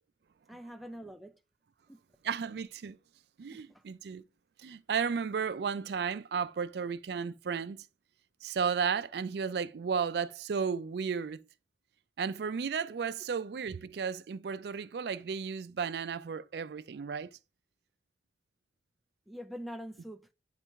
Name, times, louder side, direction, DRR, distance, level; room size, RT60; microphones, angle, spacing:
voice 1, 0.5-1.4 1.9-2.0 3.5-3.8 19.3-20.3, equal, ahead, 0.4 m, -44 dB
voice 2, 2.2-3.0 3.4-4.2 4.6-7.9 8.4-11.4 12.2-17.3, right 6 dB, 65° right, 0.4 m, -34 dB
8.8 x 3.3 x 4.6 m
head